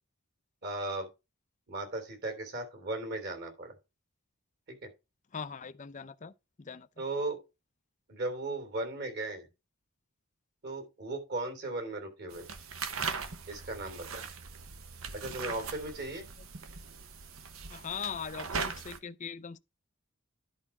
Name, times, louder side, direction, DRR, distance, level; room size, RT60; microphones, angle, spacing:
voice 1, 0.6-1.1 1.7-3.7 4.8-4.9 7.0-7.4 8.1-9.5 10.6-12.4 13.5-14.2 15.1-16.3, right 2 dB, 50° right, 3.3 m, -36 dB
voice 2, 5.3-6.3 6.6-6.9 17.7-19.6, left 6 dB, 35° left, 0.5 m, -40 dB
sound 1, 12.3-19.0, right 5 dB, 70° right, 0.9 m, -40 dB
11.0 x 4.8 x 4.4 m
head